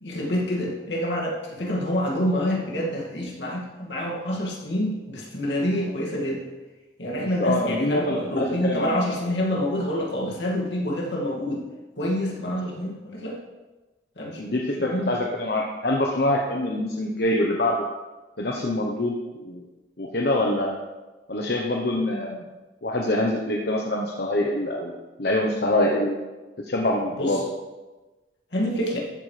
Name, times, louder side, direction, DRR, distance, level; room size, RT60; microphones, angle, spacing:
voice 1, 0.0-6.4 7.0-11.6 12.0-13.4 14.2-14.5 14.8-15.1 27.2-27.4 28.5-29.0, equal, 75° left, -2 dB, 2.3 m, -27 dB
voice 2, 7.2-9.0 14.4-17.8 18.4-19.6 20.0-20.7 21.3-22.4 22.8-24.9 25.2-26.2 26.7-27.4, left 1 dB, 55° left, -1 dB, 1.0 m, -25 dB
14.0 x 8.2 x 3.4 m, 1.2 s
head